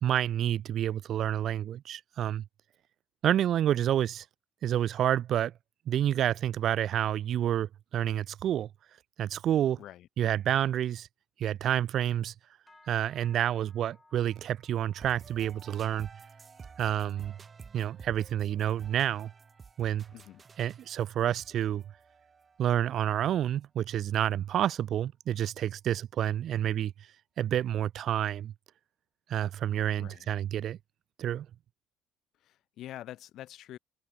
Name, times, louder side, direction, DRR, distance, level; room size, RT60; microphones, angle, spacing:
voice 1, 0.0-2.4 3.2-4.2 4.6-5.5 5.9-8.7 9.2-9.8 10.2-11.1 11.4-12.3 12.9-16.1 16.8-17.3 17.7-19.3 19.8-20.1 20.6-21.8 22.6-26.9 27.4-28.5 29.3-30.8 31.2-31.5, right 11 dB, 60° right, 0.4 m, -29 dB
voice 2, 9.8-10.1 20.1-20.4 30.0-30.3 32.4-33.8, left 13 dB, 65° left, 0.7 m, -46 dB
sound 1, 12.7-22.2 22.5-23.0 23.4-23.7 24.2-24.3, left 2 dB, 15° left, 4.3 m, -66 dB
sound 2, 15.0-22.8, right 5 dB, 35° right, 0.8 m, -51 dB
supercardioid pair, 80°, 0 cm